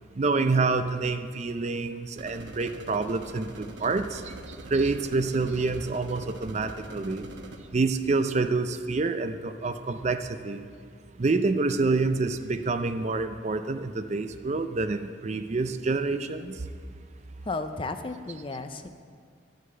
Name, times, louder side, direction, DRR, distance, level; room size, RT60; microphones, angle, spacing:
voice 1, 0.1-7.3 7.7-10.6 11.2-16.7, right 3 dB, 35° right, 9 dB, 0.4 m, -27 dB
sound 1, 2.2-7.6, right 2 dB, 60° right, 1.0 m, -44 dB
voice 2, 17.4-18.9, left 3 dB, 25° left, 9 dB, 0.4 m, -33 dB
11.0 x 6.6 x 7.7 m, 2.1 s
head